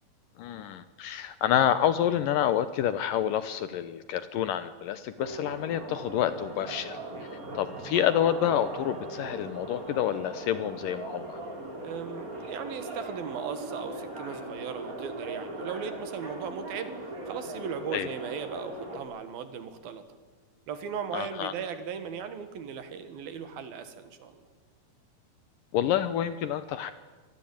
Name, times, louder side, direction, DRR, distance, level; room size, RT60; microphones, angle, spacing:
voice 1, 0.4-7.0 7.6-11.4 17.9-18.1 21.1-21.5 25.7-26.9, left 10 dB, 75° left, 13 dB, 2.2 m, -28 dB
sound 1, 5.2-19.0, right 2 dB, 20° right, 3.8 m, -39 dB
voice 2, 11.8-20.0 20.7-24.4, right 7 dB, 65° right, 10 dB, 3.6 m, -37 dB
25.5 x 19.5 x 8.8 m, 1.3 s
omnidirectional pair, 4.6 m